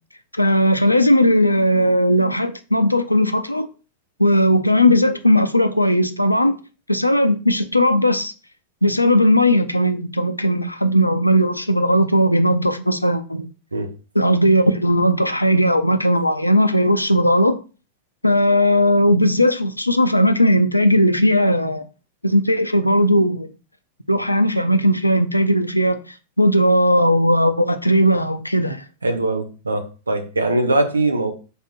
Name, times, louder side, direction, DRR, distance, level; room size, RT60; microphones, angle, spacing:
voice 1, 0.4-3.7 4.2-6.5 6.9-8.3 8.8-13.5 14.2-17.6 18.2-21.8 22.2-23.5 24.1-28.8, equal, 85° left, 0.4 m, -17 dB
voice 2, 29.0-31.3, right 2 dB, 80° right, 0.6 m, -21 dB
4.0 x 2.7 x 3.8 m
figure-of-eight pair, 90°, 0 cm